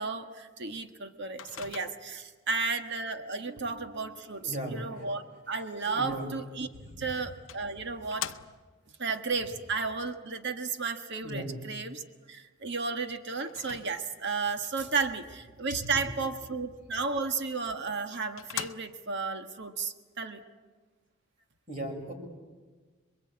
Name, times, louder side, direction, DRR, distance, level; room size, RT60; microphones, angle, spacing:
voice 1, 0.0-6.7 7.0-8.3 9.0-12.0 12.3-20.4, right 4 dB, 60° right, 7 dB, 1.6 m, -33 dB
Microwave oven, 1.4-2.3 6.6-6.7 7.5-8.9 13.5-14.4 17.5-17.6 18.0-18.1 18.4-19.2, left 10 dB, 70° left, 0.7 m, -41 dB
voice 2, 4.4-5.0 5.8-6.3 6.7-7.1 11.2-11.5 21.7-22.1, right 1 dB, 40° right, 0 dB, 6.8 m, -37 dB
26.5 x 22.5 x 8.7 m, 1.4 s
head